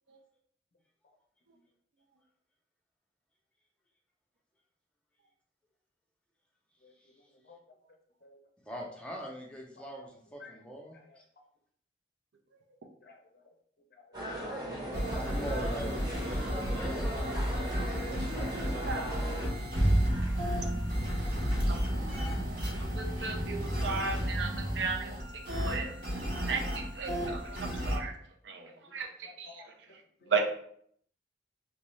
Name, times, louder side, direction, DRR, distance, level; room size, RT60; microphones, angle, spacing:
voice 1, 8.7-11.2 14.9-17.3, right 1 dB, 5° left, -2 dB, 0.5 m, -42 dB
voice 2, 14.0-14.7 15.1-15.2 17.7-17.8 18.6-18.8 19.3-19.4 20.6-20.7 21.2-21.9 22.9-23.0 24.2-24.4 25.0-25.2 27.2-27.8 29.2-29.6 30.2-30.3, left 4 dB, 55° left, 2 dB, 0.5 m, -54 dB
sound 1, 14.1-19.5, right 1 dB, 20° right, 0.8 m, -38 dB
sound 2, 14.9-28.0, equal, 50° right, 0.9 m, -34 dB
sound 3, 19.7-24.9, right 1 dB, 90° right, 1.0 m, -32 dB
voice 3, 22.9-24.5 24.8-25.1 25.6-25.9 26.5-26.6 27.0-28.1 28.5-29.5 30.3-30.4, right 5 dB, 75° right, 3 dB, 0.5 m, -34 dB
3.1 x 2.7 x 3.1 m, 0.64 s
head